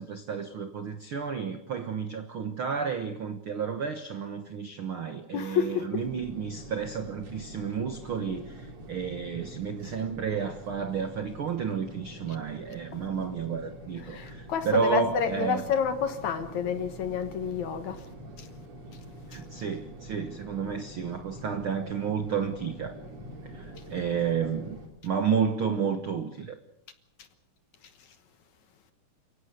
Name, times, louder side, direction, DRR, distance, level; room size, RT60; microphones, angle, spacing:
voice 1, 0.0-15.6 19.3-23.0 23.4-26.5, right 6 dB, 75° right, 1.2 m, -31 dB
voice 2, 5.3-6.1 12.9-13.0 14.0-18.1 18.4-18.5 19.3-19.4 27.2-27.3 28.0-28.1, left 7 dB, 60° left, 2.2 m, -30 dB
sound 1, 6.0-24.9, right 1 dB, 45° right, 3.9 m, -45 dB
29.5 x 17.0 x 6.6 m
omnidirectional pair, 4.4 m